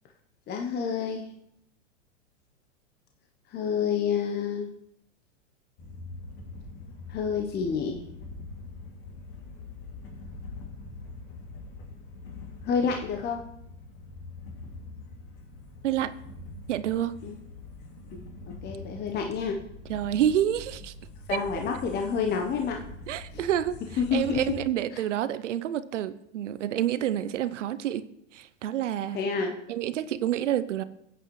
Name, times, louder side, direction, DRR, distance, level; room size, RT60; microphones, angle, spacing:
voice 1, 0.5-1.2 3.5-4.7 7.1-8.0 12.7-13.4 17.2-17.3 18.1-18.2 18.6-19.6 21.3-22.8 23.3-23.5 24.0-24.4 24.9-25.0 29.1-29.6, left 6 dB, 25° left, 3 dB, 1.0 m, -28 dB
sound 1, 5.8-24.6, left 2 dB, 45° left, 2.7 m, -44 dB
voice 2, 16.7-17.1 19.9-20.9 21.3-21.4 23.1-28.0 28.3-29.2 29.7-30.8, right 11 dB, 70° right, 14 dB, 0.8 m, -28 dB
15.5 x 9.1 x 3.2 m, 0.77 s
hypercardioid pair, 105°, 38 cm